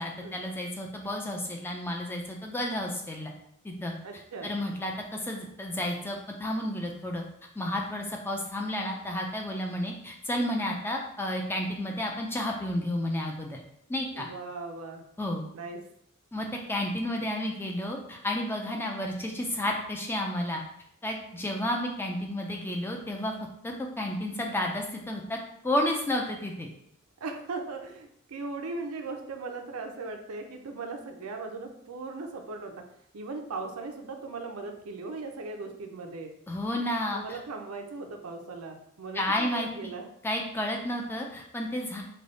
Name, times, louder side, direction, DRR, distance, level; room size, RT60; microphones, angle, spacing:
voice 1, 0.0-3.3 3.6-7.2 7.6-13.6 13.9-14.3 15.2-15.4 16.3-20.6 21.0-23.3 23.6-25.4 25.6-26.7 36.5-37.4 39.1-39.9 40.2-42.0, left 1 dB, 10° left, 1 dB, 0.4 m, -31 dB
voice 2, 4.0-4.5 14.1-15.0 15.5-15.9 27.2-32.8 33.1-36.3 37.1-40.1, right 3 dB, 80° right, 4 dB, 0.5 m, -38 dB
3.3 x 2.3 x 3.9 m, 0.73 s
head